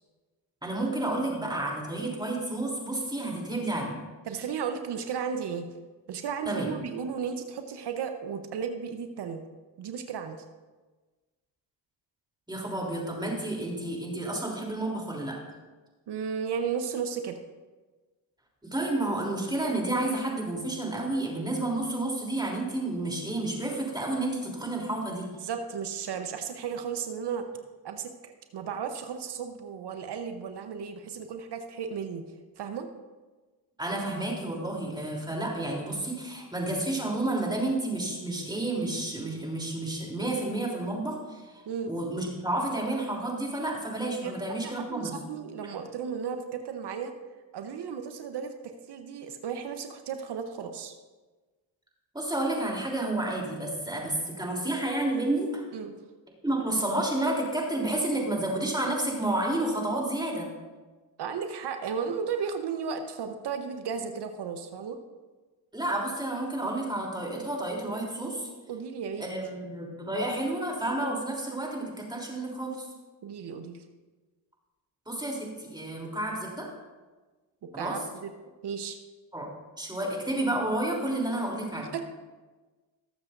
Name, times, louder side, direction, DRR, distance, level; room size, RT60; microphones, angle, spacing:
voice 1, 0.6-4.0 6.4-6.7 12.5-15.4 18.6-25.3 33.8-41.4 41.9-45.2 52.1-55.6 56.4-60.5 65.7-68.5 69.2-72.8 75.0-76.7 77.7-78.0 79.3-79.5 79.8-81.9, right 1 dB, 10° right, -2 dB, 3.4 m, -30 dB
voice 2, 4.3-5.7 6.1-9.4 9.8-10.4 16.1-17.4 25.4-27.5 27.8-32.2 32.6-32.9 41.7-41.9 44.2-44.3 44.6-47.1 47.5-51.0 55.7-56.0 61.2-65.0 68.7-69.2 73.2-73.8 77.7-78.3 78.6-79.0 81.8-82.1, right 6 dB, 60° right, 7 dB, 1.1 m, -34 dB
19.5 x 7.2 x 2.7 m, 1.3 s
supercardioid pair, 70°, 47 cm